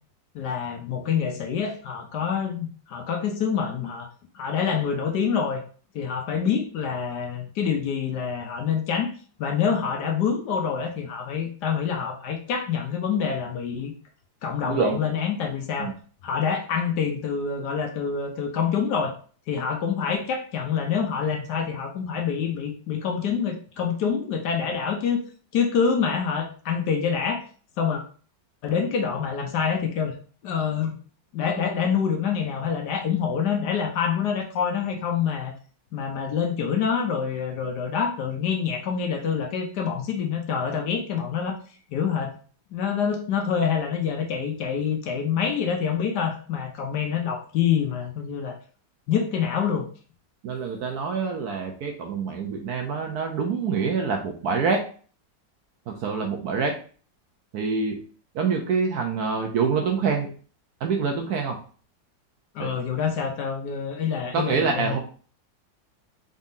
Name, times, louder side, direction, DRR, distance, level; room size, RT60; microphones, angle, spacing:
voice 1, 0.3-4.1 4.3-5.6 5.9-9.1 9.4-13.9 14.4-16.0 16.2-19.1 19.5-25.2 25.5-27.4 27.8-28.0 28.6-30.1 30.4-30.9 31.3-35.5 35.9-41.6 41.9-42.4 42.7-48.6 49.1-49.9 62.5-65.0, left 7 dB, 70° left, 3 dB, 1.2 m, -26 dB
voice 2, 14.7-15.0 15.8-15.9 50.4-54.8 55.9-56.8 57.5-58.0 58.3-60.3 60.8-61.6 62.6-62.7 64.3-65.0, right 5 dB, 70° right, 2 dB, 1.0 m, -26 dB
4.0 x 3.6 x 2.6 m, 0.41 s
omnidirectional pair, 2.0 m